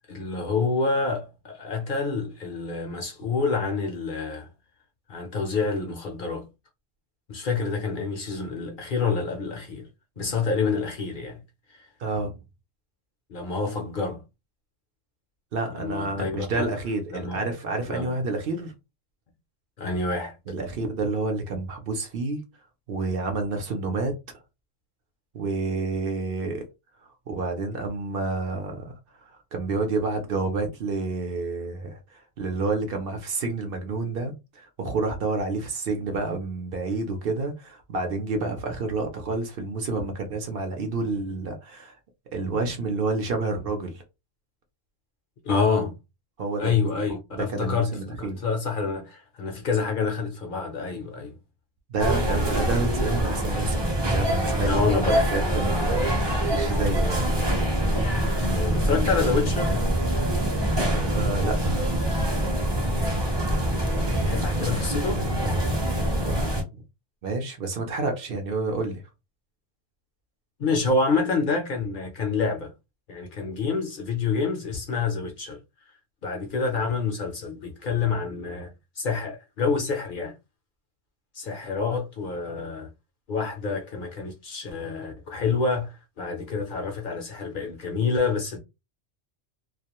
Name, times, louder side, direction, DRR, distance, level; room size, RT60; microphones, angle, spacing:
voice 1, 0.1-4.5 5.1-6.5 7.3-9.9 10.2-11.4 11.7-11.9 13.3-14.2 15.7-16.7 17.1-17.4 17.9-18.1 19.8-20.3 45.4-45.9 46.6-51.4 54.6-55.3 58.3-59.8 64.0-65.3 70.6-72.7 73.1-75.6 76.2-78.7 79.0-80.3 81.3-82.9 83.3-88.6, left 4 dB, 55° left, 0.6 m, -27 dB
voice 2, 12.0-12.4 15.5-18.7 20.5-22.4 22.9-24.1 25.3-26.6 27.3-28.9 29.2-41.9 42.3-44.0 46.4-46.7 47.3-48.4 51.9-53.8 54.1-54.8 55.3-57.3 60.9-61.8 66.7-66.8 67.2-69.0, right 3 dB, 60° right, 0.8 m, -29 dB
sound 1, 52.0-66.6, right 1 dB, 25° right, 0.7 m, -24 dB
2.3 x 2.1 x 2.9 m
omnidirectional pair, 1.2 m